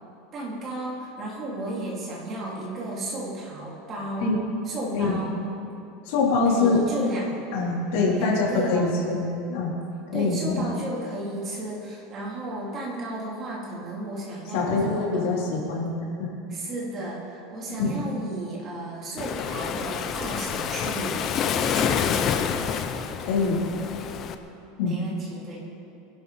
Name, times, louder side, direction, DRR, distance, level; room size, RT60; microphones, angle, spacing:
voice 1, 0.3-5.4 6.5-7.4 8.1-8.9 10.1-15.5 16.5-22.9 24.8-25.6, right 1 dB, 25° right, -4 dB, 3.2 m, -34 dB
voice 2, 6.0-6.8 7.5-9.2 9.5-9.7 10.1-10.6 14.5-15.9 16.2-16.3 17.8-18.0 23.2-23.6 24.8-25.0, left 3 dB, 60° left, -5 dB, 3.6 m, -24 dB
Waves surf, 19.2-24.3, left 7 dB, 30° left, 0.6 m, -28 dB
21.5 x 11.5 x 4.2 m, 2.7 s
supercardioid pair, 170°, 0 cm